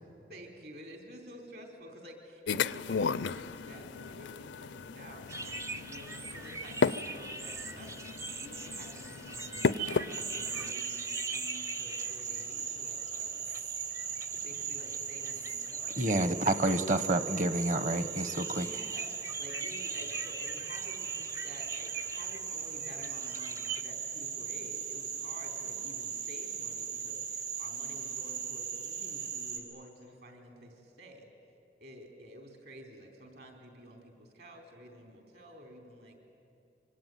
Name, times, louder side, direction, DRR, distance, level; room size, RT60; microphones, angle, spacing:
voice 1, 0.3-13.5 14.3-15.9 16.4-16.6 18.4-19.1 19.4-31.3 31.8-36.2, equal, 60° right, 3 dB, 4.2 m, -51 dB
sound 1, 2.5-10.7, left 5 dB, 85° left, 0.5 m, -34 dB
sound 2, 5.3-23.8, right 3 dB, 15° right, 0.6 m, -43 dB
Frog, 10.1-29.6, right 7 dB, 85° right, 4.3 m, -38 dB
voice 2, 16.0-18.7, right 1 dB, 45° right, 12 dB, 1.2 m, -29 dB
25.5 x 24.0 x 9.4 m, 2.7 s
head